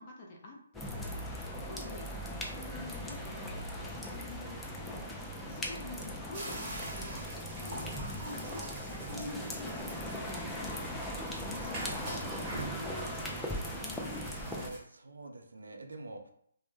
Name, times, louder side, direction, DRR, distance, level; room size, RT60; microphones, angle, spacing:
voice 1, 0.0-14.0, left 2 dB, 35° left, -1 dB, 0.6 m, -48 dB
sound 1, 0.7-14.7, equal, 5° left, 0.3 m, -39 dB
sound 2, 6.3-14.8, right 2 dB, 25° right, 1.2 m, -44 dB
voice 2, 14.2-16.3, right 2 dB, 80° right, 4 dB, 0.4 m, -46 dB
2.1 x 2.0 x 3.1 m, 0.67 s
hypercardioid pair, 150°, 0 cm